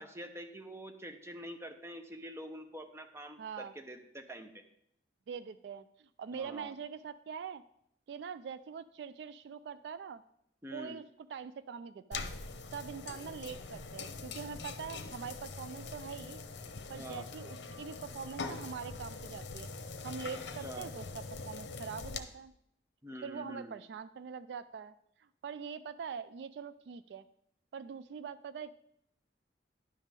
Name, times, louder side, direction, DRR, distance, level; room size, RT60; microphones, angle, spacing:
voice 1, 0.0-4.5 6.3-6.7 10.6-11.0 17.0-17.3 20.4-20.9 23.0-23.7, equal, 15° right, 5 dB, 0.7 m, -46 dB
voice 2, 3.4-3.7 5.3-7.6 8.1-10.2 10.7-11.0 11.3-12.2 12.7-16.4 16.9-19.7 20.0-22.5 23.2-24.9 25.2-27.2 27.7-28.7, right 6 dB, 65° right, 14 dB, 0.3 m, -43 dB
sound 1, 12.1-22.2, left 4 dB, 70° left, 0.7 m, -43 dB
10.5 x 3.6 x 7.3 m, 0.74 s
head